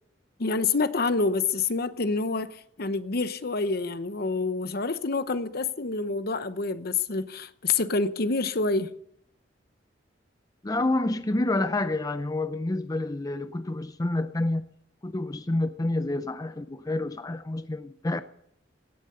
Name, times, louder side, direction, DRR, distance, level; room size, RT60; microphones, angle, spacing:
voice 1, 0.4-8.9, left 3 dB, 55° left, 0.9 m, -27 dB
voice 2, 10.6-14.6 15.0-18.2, left 2 dB, 20° left, 0.5 m, -28 dB
17.5 x 10.5 x 6.8 m
head